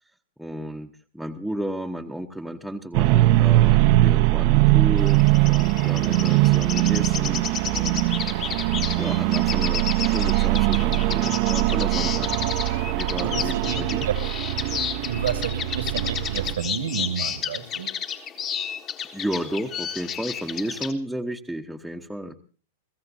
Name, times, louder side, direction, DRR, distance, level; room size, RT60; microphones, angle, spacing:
voice 1, 0.4-8.1 9.0-12.3 12.8-14.1 19.1-22.4, right 1 dB, ahead, 0 dB, 1.0 m, -33 dB
sound 1, 2.9-16.6, right 18 dB, 50° right, 0.7 m, -21 dB
sound 2, 5.0-20.9, left 8 dB, 35° left, 1.5 m, -32 dB
voice 2, 13.2-14.1 15.0-17.9, right 7 dB, 75° right, 9 dB, 1.8 m, -30 dB
29.5 x 16.0 x 2.7 m, 0.37 s
hypercardioid pair, 105°, 0 cm